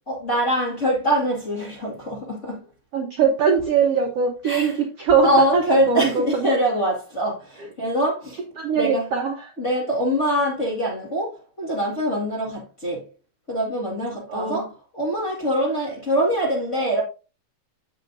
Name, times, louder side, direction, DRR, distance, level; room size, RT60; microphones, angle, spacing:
voice 1, 0.1-2.7 4.4-4.8 5.2-8.4 8.7-9.0 9.6-13.1 13.5-17.0, equal, 30° left, 1.3 m, -24 dB
voice 2, 2.9-6.5 8.6-9.5 14.3-14.7, right 6 dB, 85° right, 1.3 m, -22 dB
7.9 x 7.8 x 2.6 m
omnidirectional pair, 4.3 m